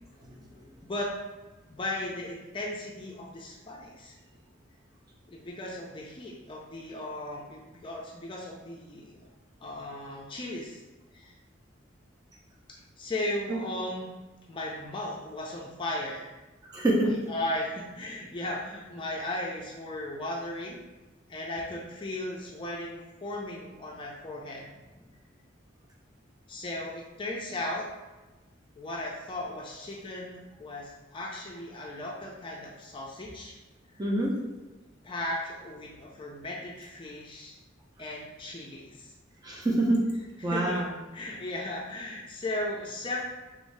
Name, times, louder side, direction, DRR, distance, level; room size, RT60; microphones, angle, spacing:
voice 1, 0.8-1.1 1.7-4.2 5.3-9.3 9.6-10.8 11.1-11.3 12.7-14.1 14.5-16.3 17.0-20.8 21.3-24.8 26.5-27.9 28.8-33.6 33.9-34.0 35.0-37.6 38.0-39.1 40.4-40.8 41.1-43.2, left 1 dB, 25° left, -2 dB, 0.4 m, -36 dB
voice 2, 16.7-17.1 34.0-34.3 39.4-40.0 40.4-40.9, right 1 dB, 20° right, -2 dB, 0.6 m, -26 dB
3.5 x 2.6 x 3.2 m, 1.2 s
head